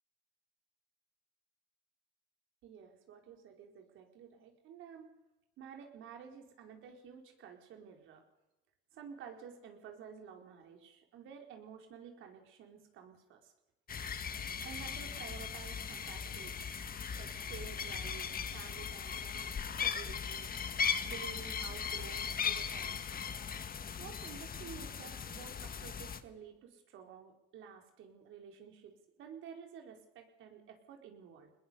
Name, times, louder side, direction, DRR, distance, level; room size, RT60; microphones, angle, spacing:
voice 1, 2.6-5.1 5.6-8.2 8.9-13.5 14.6-16.7 17.1-19.5 19.8-20.5 21.0-23.0 24.0-31.5, right 7 dB, 90° right, 3 dB, 4.6 m, -51 dB
sound 1, 13.9-26.2, left 6 dB, 50° left, 1.8 m, -38 dB
22.5 x 21.0 x 7.0 m, 0.97 s
cardioid pair, 90°, 20 cm